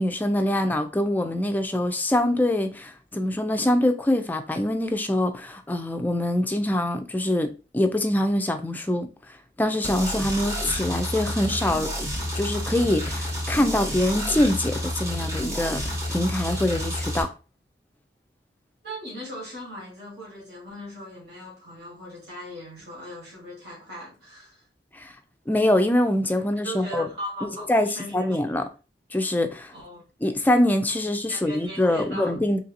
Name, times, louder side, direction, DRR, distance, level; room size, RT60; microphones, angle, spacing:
voice 1, 0.0-9.1 9.6-11.9 12.4-17.3 24.9-25.1 25.5-27.1 27.7-27.9 28.1-28.6 29.1-29.7 30.2-32.6, left 1 dB, 10° left, 0.3 m, -24 dB
sound 1, 9.8-17.2, equal, 20° right, 0.8 m, -30 dB
voice 2, 18.8-24.7 26.6-28.4 29.7-30.0 31.3-32.4, equal, 70° right, 1.5 m, -38 dB
3.2 x 2.7 x 2.4 m
head